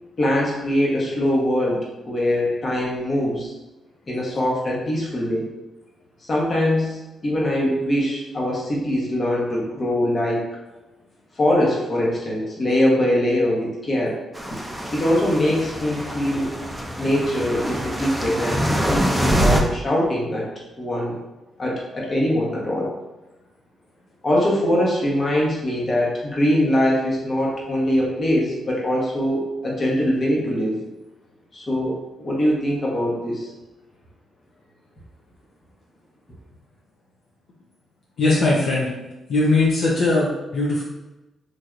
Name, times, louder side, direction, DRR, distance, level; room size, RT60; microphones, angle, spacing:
voice 1, 0.2-3.5 4.1-5.4 6.2-10.4 11.4-14.2 14.9-16.5 17.0-20.5 20.8-21.2 21.6-22.9 24.2-30.8 31.5-33.5, left 1 dB, 40° left, -4 dB, 1.0 m, -22 dB
sound 1, 14.3-19.6, equal, ahead, 0.5 m, -24 dB
voice 2, 38.2-38.9 39.3-40.8, left 2 dB, 70° left, -5 dB, 0.6 m, -19 dB
3.3 x 2.6 x 2.4 m, 1.0 s
cardioid pair, 75°, 0 cm